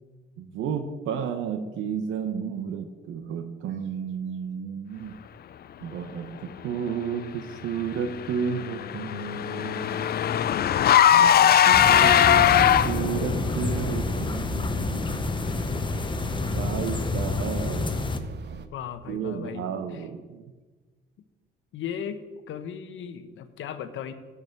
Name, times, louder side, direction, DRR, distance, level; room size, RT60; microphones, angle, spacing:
voice 1, 0.4-5.2 5.8-10.1 11.1-15.4 16.5-18.1 19.1-20.4, right 7 dB, 85° right, 6 dB, 0.8 m, -32 dB
Car / Engine, 8.2-13.2, left 10 dB, 50° left, 0.5 m, -19 dB
sound 1, 11.7-18.2, left 3 dB, 25° left, 0.9 m, -28 dB
sound 2, 12.6-18.7, right 6 dB, 60° right, 0.9 m, -41 dB
voice 2, 18.7-19.7 19.9-20.1 21.7-22.2 22.5-24.1, left 8 dB, 75° left, 11 dB, 0.9 m, -36 dB
11.0 x 4.9 x 7.8 m, 1.3 s
cardioid pair, 90°, 20 cm